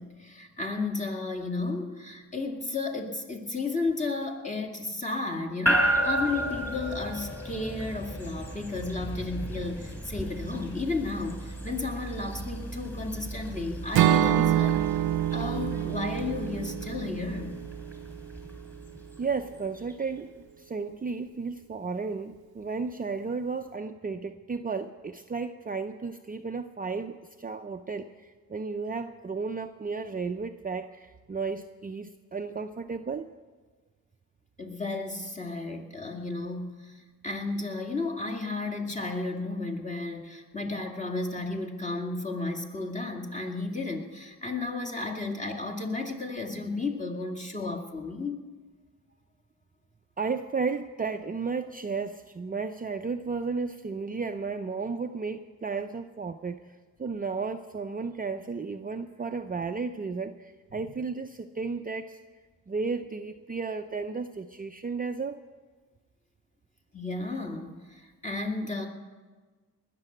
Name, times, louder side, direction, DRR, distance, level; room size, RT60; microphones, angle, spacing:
voice 1, 0.0-14.8 15.3-17.5 34.6-48.4 66.9-68.9, left 3 dB, 20° left, 2 dB, 2.3 m, -33 dB
sound 1, 5.7-19.9, right 1 dB, 5° left, 3.6 m, -34 dB
Acoustic guitar / Strum, 13.9-18.0, right 11 dB, 85° right, 0.6 m, -26 dB
voice 2, 19.2-20.3 20.6-33.3 50.2-56.6 57.0-62.2 62.7-65.4, right 4 dB, 25° right, 6 dB, 0.6 m, -33 dB
20.0 x 6.9 x 9.2 m, 1.4 s
cardioid pair, 80°, 36 cm